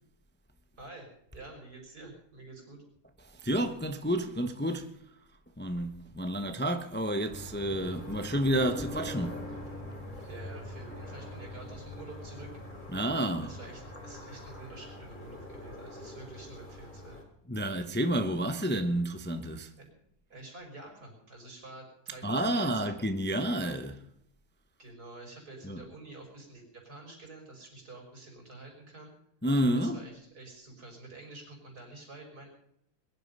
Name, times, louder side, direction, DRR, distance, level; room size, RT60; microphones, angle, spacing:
voice 1, 0.8-1.1 1.3-2.8 10.3-12.5 13.4-17.2 19.8-19.9 20.3-23.0 24.8-29.1 29.7-32.5, right 2 dB, 75° right, 5.9 m, -48 dB
voice 2, 3.2-4.9 5.6-9.4 12.9-13.5 17.5-19.7 22.2-24.0 25.6-25.8 29.4-30.0, right 1 dB, 10° left, 0.7 m, -30 dB
sound 1, 7.3-17.2, left 1 dB, 30° left, 3.0 m, -43 dB
21.5 x 11.0 x 5.4 m
omnidirectional pair, 1.7 m